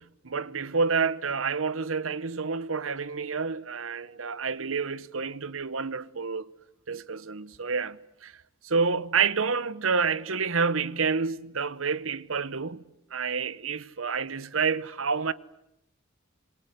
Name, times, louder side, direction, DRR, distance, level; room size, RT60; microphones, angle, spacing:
voice 1, 0.0-6.5 6.9-12.8 13.1-15.3, right 5 dB, 75° right, 1.0 m, -29 dB
27.5 x 23.0 x 9.6 m
head